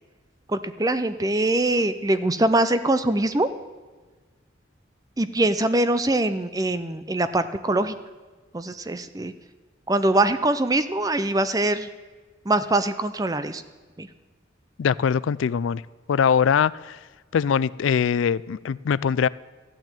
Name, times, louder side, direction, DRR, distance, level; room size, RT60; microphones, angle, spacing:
voice 1, 0.5-3.5 5.2-7.9 8.5-9.3 9.9-11.9 12.5-13.6 14.0-14.1, right 2 dB, 20° right, 12 dB, 0.5 m, -23 dB
voice 2, 14.8-15.8 16.1-17.0 17.3-19.3, left 7 dB, 80° left, 20 dB, 0.3 m, -22 dB
13.5 x 9.0 x 8.9 m, 1.3 s
head